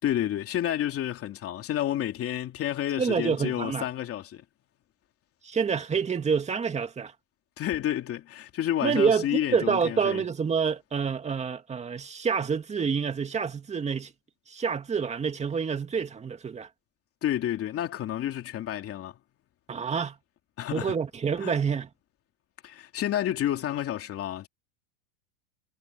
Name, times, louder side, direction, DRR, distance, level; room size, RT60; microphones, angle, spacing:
voice 1, 0.0-4.4 7.6-10.2 17.2-19.1 20.6-21.0 21.4-21.5 22.6-24.5, left 11 dB, 30° left, 2.9 m, -30 dB
voice 2, 3.0-3.9 5.4-7.1 8.8-14.1 14.5-16.7 19.7-20.2 20.7-21.9, right 6 dB, 15° right, 2.3 m, -27 dB
supercardioid pair, 140°, 43 cm